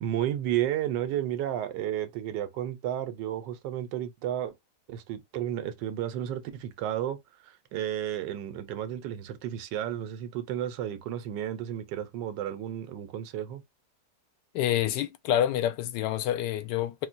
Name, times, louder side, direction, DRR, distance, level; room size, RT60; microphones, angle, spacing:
voice 1, 0.0-4.5 4.9-7.2 7.4-13.6, right 11 dB, 90° right, 1.3 m, -32 dB
voice 2, 14.5-17.1, left 11 dB, 85° left, 1.2 m, -27 dB
4.2 x 2.2 x 2.5 m
omnidirectional pair, 1.8 m